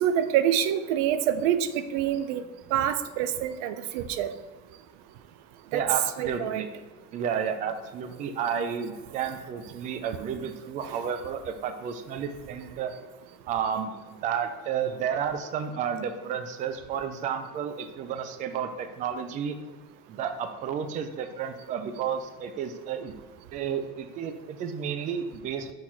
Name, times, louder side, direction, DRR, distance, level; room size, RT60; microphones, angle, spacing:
voice 1, 0.0-2.4 2.7-4.3 5.7-5.8 6.2-6.6, right 10 dB, 85° right, 11 dB, 0.6 m, -26 dB
voice 2, 5.7-6.7 7.1-12.9 13.5-19.6 20.1-23.1 23.5-25.7, right 7 dB, 25° right, 8 dB, 0.3 m, -31 dB
6.3 x 4.1 x 4.4 m, 1.3 s
cardioid pair, 175°, 30 cm